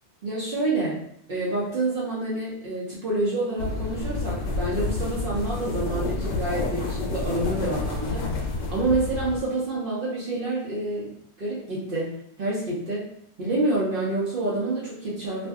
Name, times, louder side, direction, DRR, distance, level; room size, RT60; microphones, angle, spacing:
voice 1, 0.2-1.0 1.3-8.3 8.7-11.1 11.4-13.0 13.4-15.5, right 2 dB, 55° right, -6 dB, 0.8 m, -28 dB
sound 1, 3.6-9.4, left 3 dB, 85° left, 0.9 m, -29 dB
2.5 x 2.2 x 3.4 m, 0.70 s
omnidirectional pair, 1.1 m